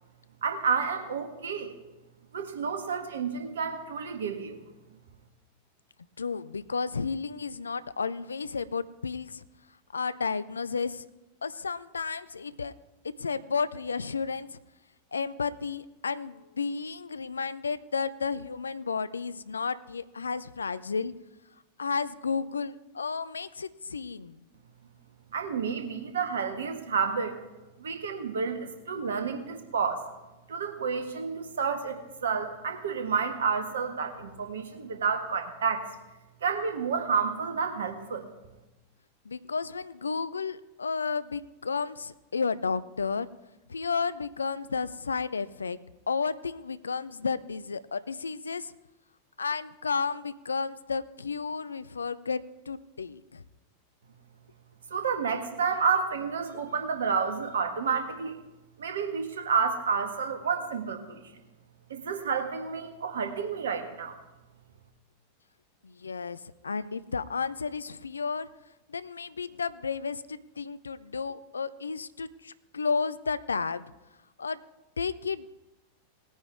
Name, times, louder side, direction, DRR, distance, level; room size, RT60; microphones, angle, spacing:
voice 1, 0.4-1.7 2.3-4.6 25.3-27.4 27.8-30.0 30.5-35.9 36.4-38.3 54.9-58.4 58.8-61.0 61.9-64.2, right 5 dB, 65° right, 6 dB, 1.6 m, -30 dB
voice 2, 6.2-9.4 9.9-11.1 11.4-12.7 13.2-14.6 15.1-21.1 21.8-24.4 39.3-43.3 43.7-45.8 46.1-48.7 49.4-53.4 65.8-68.5 68.9-73.9 74.4-74.6 75.0-75.5, left 5 dB, 75° left, 16 dB, 0.4 m, -32 dB
19.0 x 9.5 x 3.6 m, 1.0 s
figure-of-eight pair, 90°, 0 cm